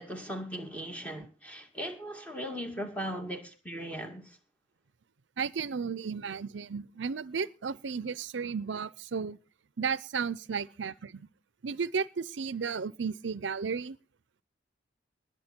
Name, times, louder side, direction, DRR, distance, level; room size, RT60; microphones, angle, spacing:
voice 1, 0.0-4.2, equal, 10° left, 2.3 m, -38 dB
voice 2, 5.4-9.4 9.8-11.3 11.6-14.0, right 6 dB, 85° right, 0.6 m, -34 dB
21.0 x 8.0 x 4.4 m
head